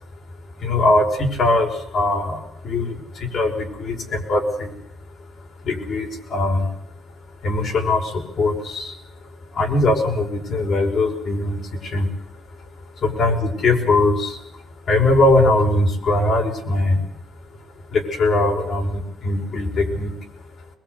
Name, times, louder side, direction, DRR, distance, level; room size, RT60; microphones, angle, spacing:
voice 1, 0.6-4.7 5.6-6.7 7.4-9.0 9.5-12.1 13.0-14.4 14.9-17.0 17.9-20.1, left 2 dB, 60° left, 2 dB, 5.5 m, -21 dB
22.5 x 22.0 x 8.2 m, 0.76 s
cardioid pair, 90°, 0 cm